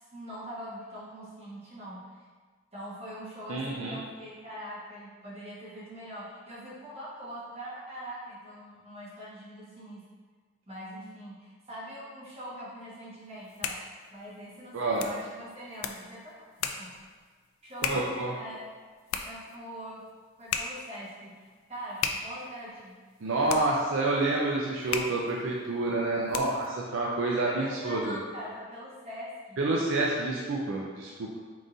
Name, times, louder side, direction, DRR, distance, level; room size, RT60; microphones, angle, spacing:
voice 1, 0.0-2.0 2.7-10.1 10.7-13.8 14.1-16.4 16.8-16.9 17.6-18.7 19.2-20.1 20.4-23.0 23.4-23.6 27.4-29.7, equal, 30° right, -9 dB, 1.3 m, -43 dB
voice 2, 3.5-4.0 14.7-15.0 17.8-18.3 23.2-28.2 29.6-31.4, right 2 dB, 70° right, -3 dB, 0.4 m, -28 dB
sound 1, 13.3-26.8, left 6 dB, 75° left, 0.3 m, -38 dB
3.9 x 3.8 x 2.5 m, 1.5 s
head